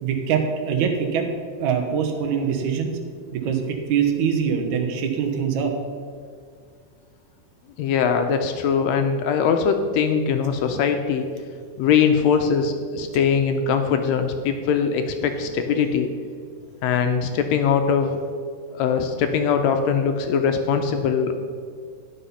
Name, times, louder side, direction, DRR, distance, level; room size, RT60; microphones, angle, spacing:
voice 1, 0.0-1.3 1.6-3.0 3.3-5.7 15.4-15.5, right 7 dB, 70° right, 3 dB, 2.3 m, -23 dB
voice 2, 7.8-11.3 11.8-16.1 16.8-18.2 18.7-21.3, left 6 dB, 80° left, 6 dB, 1.6 m, -21 dB
11.5 x 5.7 x 5.5 m, 2.1 s
omnidirectional pair, 3.6 m